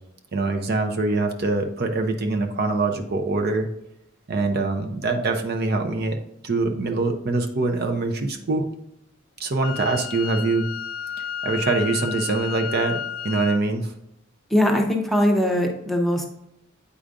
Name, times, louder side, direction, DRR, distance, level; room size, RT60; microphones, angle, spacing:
voice 1, 0.3-3.7 4.3-6.2 6.4-8.7 9.4-10.7 11.4-13.9, right 3 dB, 50° right, 4 dB, 0.6 m, -24 dB
Wind instrument woodwind instrument, 9.6-13.6, left 8 dB, 45° left, 0.3 m, -32 dB
voice 2, 14.5-16.3, left 1 dB, ahead, 1 dB, 0.7 m, -21 dB
8.3 x 4.9 x 2.5 m, 0.80 s
head